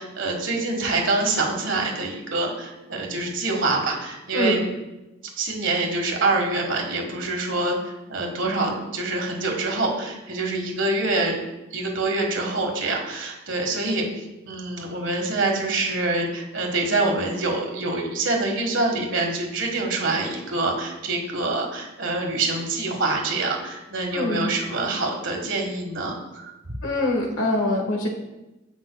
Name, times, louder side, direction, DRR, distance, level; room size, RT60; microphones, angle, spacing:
voice 1, 0.0-4.6 5.4-11.4 11.7-26.5, right 2 dB, 70° right, 2 dB, 1.5 m, -25 dB
voice 2, 24.1-24.5 26.8-28.1, left 1 dB, 80° left, 1 dB, 1.5 m, -24 dB
15.0 x 5.4 x 2.3 m, 1.0 s
head